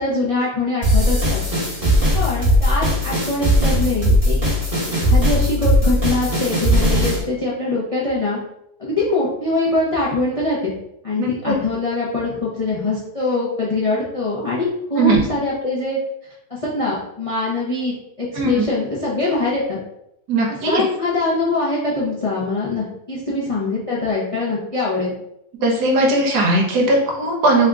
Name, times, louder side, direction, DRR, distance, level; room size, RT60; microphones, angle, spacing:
voice 1, 0.0-1.4 2.1-4.4 5.0-8.4 8.8-10.7 11.0-16.0 16.5-19.8 20.7-25.1, left 2 dB, 60° left, -8 dB, 0.3 m, -23 dB
sound 1, 0.8-7.2, equal, 15° right, 1.1 m, -18 dB
voice 2, 11.2-11.5 15.0-15.2 18.3-18.7 20.3-20.8 25.6-27.7, right 2 dB, 70° right, 0 dB, 1.3 m, -18 dB
3.4 x 2.4 x 3.5 m, 0.80 s
omnidirectional pair, 1.8 m